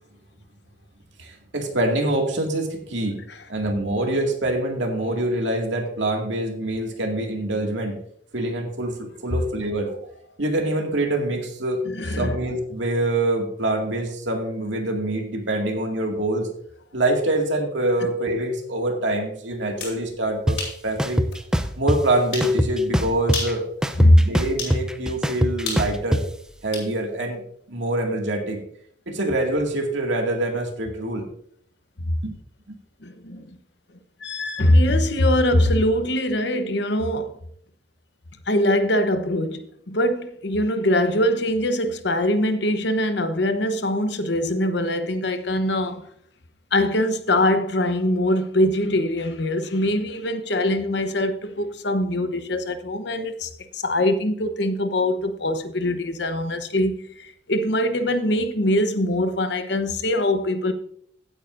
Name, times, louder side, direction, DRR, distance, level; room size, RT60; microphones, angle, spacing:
voice 1, 1.2-3.2 3.5-8.0 8.3-10.0 10.4-16.5 16.9-20.6 20.8-21.2 21.8-23.6 24.1-26.2 26.6-27.4 27.7-28.6 29.1-31.3 32.2-32.4, right 1 dB, 75° right, 2.1 m, -25 dB
voice 2, 11.8-12.4 24.0-24.3 33.0-33.5 34.2-37.3 38.5-46.1 46.7-60.7, left 1 dB, 65° left, 1.0 m, -22 dB
sound 1, 19.6-20.0 20.6-20.8 21.3-21.4 22.3-22.5 23.2-23.6 24.6-24.8 25.7-26.9, left 3 dB, 90° left, 5.1 m, -31 dB
sound 2, 20.5-20.6 21.0-22.0 22.4-23.5 23.8-26.2, equal, 5° right, 0.5 m, -22 dB
15.5 x 8.9 x 2.6 m
head